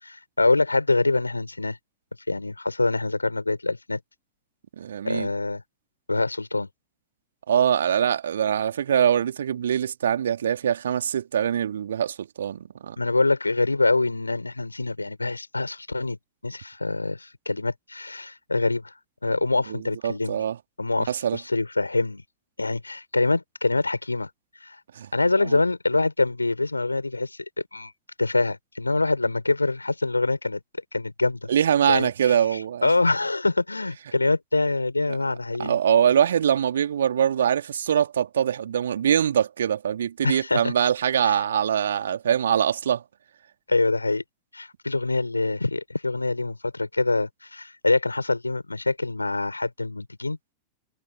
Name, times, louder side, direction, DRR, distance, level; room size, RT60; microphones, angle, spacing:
voice 1, 0.0-1.8 2.3-4.0 5.0-5.6 6.1-6.7 13.0-16.2 16.4-18.9 19.2-20.4 20.8-22.2 22.6-24.3 24.6-24.8 25.1-27.9 28.2-30.6 30.9-31.5 31.9-32.4 32.8-35.8 40.2-40.7 41.2-41.4 43.7-44.2 44.5-50.4, left 2 dB, 80° left, 5.8 m, -25 dB
voice 2, 4.8-5.3 7.5-13.0 19.7-20.6 21.1-21.4 24.9-25.1 25.4-25.6 31.5-32.9 35.1-35.2 35.6-43.0, right 9 dB, 65° right, 2.6 m, -23 dB
figure-of-eight pair, 90°, 0 cm